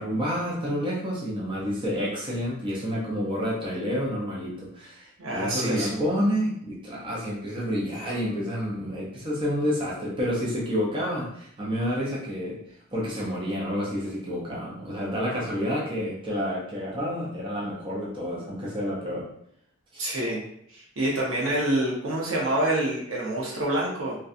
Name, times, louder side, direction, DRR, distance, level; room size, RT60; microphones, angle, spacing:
voice 1, 0.0-12.6 12.9-19.3 19.9-20.1, equal, 25° right, -5 dB, 0.5 m, -29 dB
voice 2, 5.2-6.0 20.0-20.4 20.7-24.2, right 1 dB, 80° right, -4 dB, 0.8 m, -27 dB
2.6 x 2.2 x 2.4 m, 0.69 s
head